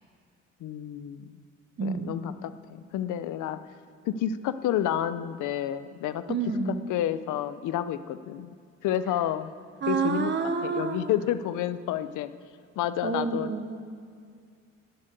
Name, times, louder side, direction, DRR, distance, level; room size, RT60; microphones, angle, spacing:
voice 1, 0.6-1.3 1.8-3.6 4.0-6.2 6.9-8.5 8.8-9.5 9.9-10.3 10.6-12.3 12.8-13.5, left 11 dB, 85° left, 13 dB, 0.7 m, -30 dB
voice 2, 1.8-2.2 6.3-6.9 9.8-11.1 13.0-13.8, right 5 dB, 35° right, 7 dB, 1.1 m, -29 dB
11.0 x 7.6 x 9.3 m, 2.2 s
cardioid pair, 90°, 30 cm